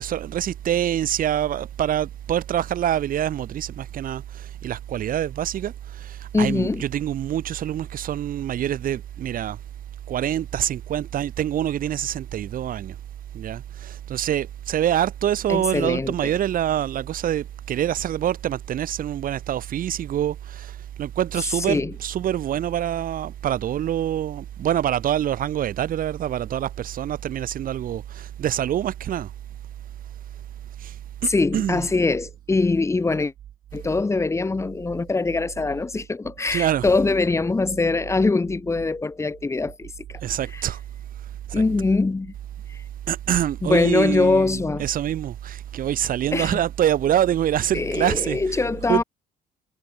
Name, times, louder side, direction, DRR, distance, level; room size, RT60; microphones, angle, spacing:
voice 1, 0.0-9.6 10.1-12.9 13.3-29.3 30.8-30.9 31.2-31.9 36.5-37.0 40.2-40.8 41.5-41.6 43.1-49.0, right 11 dB, 55° right, 2.0 m, -25 dB
voice 2, 6.3-6.8 15.5-16.3 21.7-21.9 31.3-33.3 33.7-40.2 40.5-40.6 41.5-42.3 42.7-42.8 43.6-44.9 46.3-46.6 47.7-49.0, left 3 dB, 15° left, 1.4 m, -23 dB
cardioid pair, 110°, 17 cm